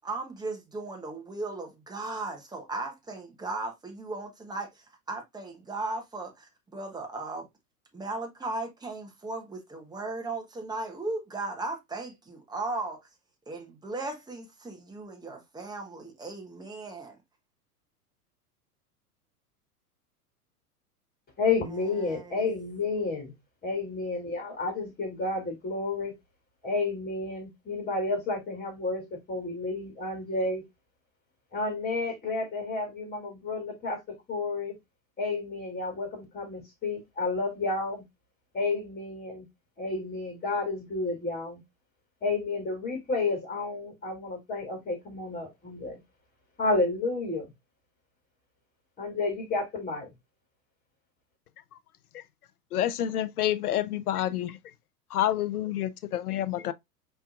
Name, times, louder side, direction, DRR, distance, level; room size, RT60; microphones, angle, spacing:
voice 1, 0.0-7.5 7.9-13.0 13.5-17.2 22.0-22.4, right 2 dB, 10° right, 1.1 m, -36 dB
voice 2, 21.4-23.3 23.6-26.1 26.6-30.7 31.5-34.8 35.2-38.0 38.5-39.4 39.8-41.6 42.2-46.0 46.6-47.5 49.0-50.1, left 3 dB, 20° left, 2.7 m, -31 dB
voice 3, 52.7-54.6 55.1-56.7, left 12 dB, 70° left, 0.7 m, -28 dB
5.3 x 3.4 x 2.4 m
figure-of-eight pair, 95°, 46 cm